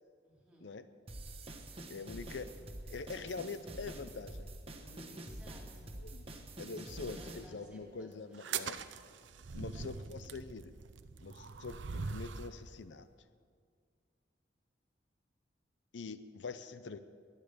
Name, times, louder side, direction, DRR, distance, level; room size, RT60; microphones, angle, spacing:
voice 1, 0.2-0.7 1.2-1.6 5.1-6.3 6.6-8.7 9.5-10.3, equal, 5° right, -3 dB, 3.7 m, -60 dB
sound 1, 1.1-7.5, right 1 dB, 30° right, 1.3 m, -47 dB
voice 2, 1.9-2.5 2.9-4.5 6.1-6.2 6.6-8.8 9.5-10.7 11.2-13.1 15.9-17.0, left 4 dB, 80° left, 12 dB, 0.6 m, -44 dB
sound 2, 4.8-12.3, left 3 dB, 30° left, 5.2 m, -66 dB
sound 3, 8.3-12.6, right 5 dB, 90° right, 0.7 m, -42 dB
22.0 x 9.2 x 6.7 m, 2.1 s
head